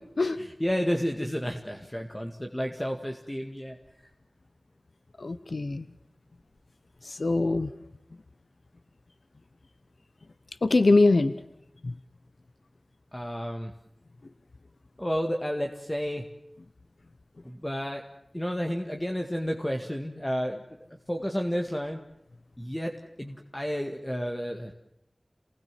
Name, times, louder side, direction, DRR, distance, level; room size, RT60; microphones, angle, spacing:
voice 1, 0.4-3.8 13.1-13.7 15.0-16.2 17.4-18.0 18.3-20.6 20.9-22.0 22.6-22.9 23.2-24.7, equal, 15° left, 3 dB, 2.0 m, -31 dB
voice 2, 5.2-5.8 7.0-7.7 10.6-11.3 11.8-11.9, left 3 dB, 80° left, 12 dB, 1.0 m, -22 dB
28.0 x 19.5 x 7.6 m, 0.83 s
wide cardioid pair, 45°, 0 cm